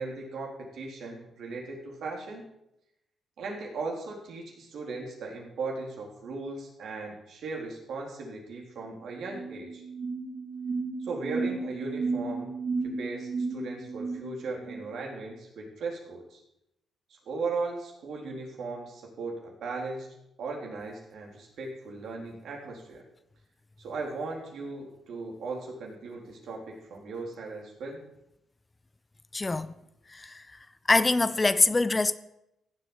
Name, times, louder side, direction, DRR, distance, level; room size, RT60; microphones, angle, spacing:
voice 1, 0.0-2.4 3.4-9.8 11.0-12.5 12.8-16.4 17.1-20.1 20.4-23.0 23.8-28.0, right 3 dB, 75° right, 3.8 m, -37 dB
sound 1, 8.8-8.9 9.2-14.9, right 4 dB, 35° right, 3.2 m, -34 dB
voice 2, 29.3-29.7 30.1-30.5 30.9-32.1, left 3 dB, 25° left, 0.8 m, -24 dB
15.5 x 7.9 x 7.2 m
cardioid pair, 65°, 0 cm